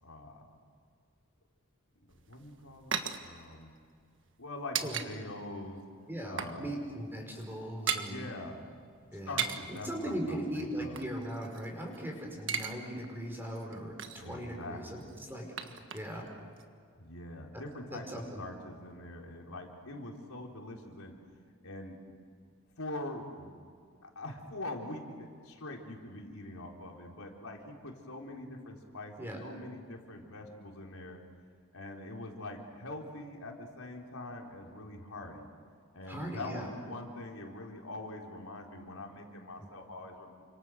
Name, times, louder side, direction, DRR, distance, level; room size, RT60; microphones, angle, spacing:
voice 1, 0.0-0.5 2.3-3.7 4.4-5.8 6.3-6.8 7.9-8.7 9.0-11.1 14.2-15.2 16.9-18.1 18.4-21.1 21.6-22.0 22.8-23.5 24.0-31.2 31.7-35.5 35.9-40.5, left 2 dB, 90° left, 0 dB, 4.3 m, -44 dB
sound 1, 2.1-5.1 5.4-5.6 5.9-6.6 6.9-7.0 7.3-8.1 9.1-9.8 10.5-12.0 12.3-12.7 13.0-13.1 13.5-14.3 15.0-16.3 16.6-16.7, right 7 dB, 60° right, 1.6 m, -37 dB
voice 2, 6.1-8.3 9.1-9.4 9.7-15.0 15.3-16.3 17.9-18.4 29.2-29.4 36.1-36.7 39.6-39.7, right 1 dB, 10° right, 0 dB, 5.0 m, -39 dB
30.0 x 26.0 x 6.6 m, 2.2 s
head